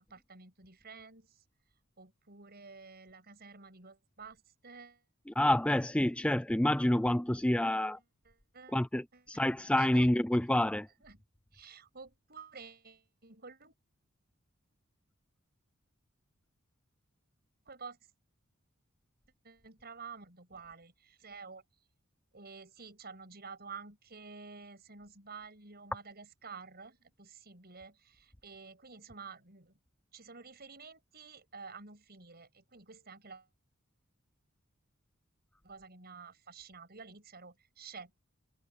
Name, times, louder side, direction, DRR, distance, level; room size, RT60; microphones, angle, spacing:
voice 1, 0.0-1.4 2.0-5.0 7.7-7.8 8.2-8.8 9.1-9.2 9.8-9.9 11.0-11.2 11.5-13.7 17.6-18.0 19.4-21.6 22.3-29.8 30.1-33.5 35.6-38.2, right 5 dB, 50° right, 6.6 m, -50 dB
voice 2, 5.3-8.0 8.7-10.9, left 1 dB, 5° left, 0.4 m, -28 dB
head